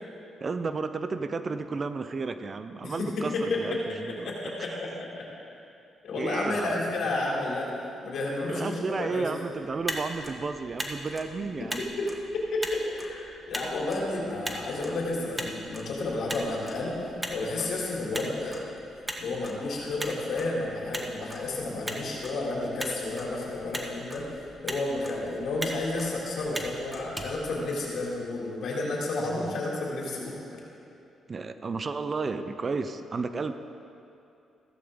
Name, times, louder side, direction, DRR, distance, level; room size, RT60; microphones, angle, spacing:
voice 1, 0.4-4.5 6.2-6.8 8.5-11.9 29.2-29.6 31.3-33.5, right 4 dB, 40° right, 10 dB, 0.7 m, -33 dB
voice 2, 2.8-3.6 4.2-5.3 6.0-7.7 8.0-9.3 11.8-12.1 12.3-18.7 18.9-30.4, left 2 dB, 70° left, -4 dB, 3.6 m, -31 dB
Motor vehicle (road), 9.7-28.2, equal, 10° right, 1.6 m, -40 dB
15.0 x 14.5 x 3.8 m, 2.7 s
supercardioid pair, 65°, 0 cm